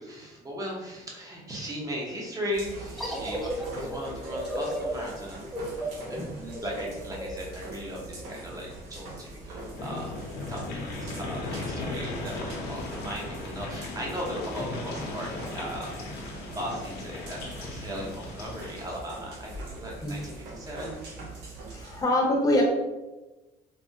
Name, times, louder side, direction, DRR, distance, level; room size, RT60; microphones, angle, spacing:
voice 1, 0.0-5.4 5.8-21.0, equal, 20° right, -2 dB, 0.8 m, -37 dB
sound 1, 2.5-22.0, right 2 dB, 90° right, 0.9 m, -43 dB
sound 2, 3.0-8.3, right 1 dB, ahead, 0.4 m, -35 dB
sound 3, 9.7-18.9, left 2 dB, 75° left, 0.7 m, -37 dB
voice 2, 21.7-22.6, left 1 dB, 20° left, -2 dB, 0.8 m, -25 dB
3.4 x 2.1 x 2.7 m, 1.1 s
cardioid pair, 110°, 17 cm